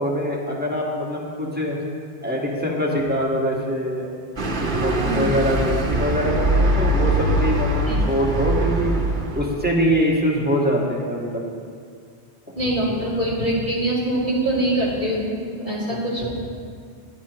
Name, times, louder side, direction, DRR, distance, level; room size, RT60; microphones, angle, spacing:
voice 1, 0.0-1.8 2.2-4.1 4.6-9.0 9.3-11.6 12.8-13.0 15.9-16.3, equal, 10° right, -4 dB, 1.7 m, -24 dB
sound 1, 4.4-9.4, right 1 dB, 50° right, 1.1 m, -22 dB
voice 2, 12.6-16.3, right 1 dB, 35° left, -8 dB, 3.6 m, -24 dB
17.5 x 10.5 x 3.1 m, 2.2 s
omnidirectional pair, 1.1 m